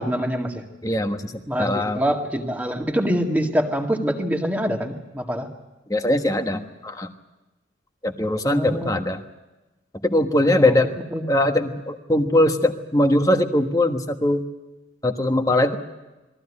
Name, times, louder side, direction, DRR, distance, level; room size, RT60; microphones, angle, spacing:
voice 1, 0.0-0.6 1.5-5.5 8.4-8.9 10.6-10.8 11.1-11.3, equal, 10° right, 2 dB, 2.0 m, -25 dB
voice 2, 0.8-1.3 1.6-2.0 5.9-7.1 8.0-9.2 10.0-10.9 11.3-14.4 15.0-15.8, left 1 dB, 20° left, 6 dB, 1.3 m, -21 dB
22.0 x 15.0 x 9.8 m, 1.1 s
head